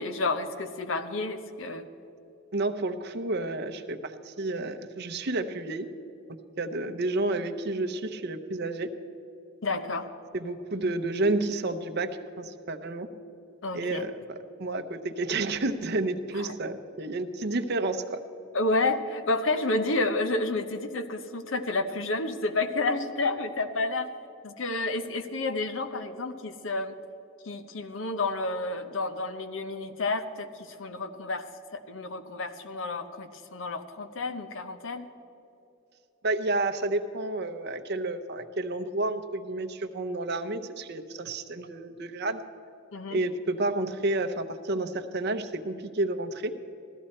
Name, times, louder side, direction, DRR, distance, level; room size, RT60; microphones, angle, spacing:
voice 1, 0.0-1.9 9.6-10.1 13.6-14.1 16.3-16.5 18.5-24.1 24.4-26.9 27.4-31.5 31.7-35.1 42.9-43.2, left 2 dB, 70° left, 10 dB, 0.8 m, -30 dB
voice 2, 2.5-5.9 6.6-8.9 10.3-13.1 13.7-18.2 36.2-42.4 43.1-46.5, right 2 dB, 55° right, 8 dB, 0.7 m, -30 dB
15.5 x 13.0 x 4.4 m, 2.9 s
head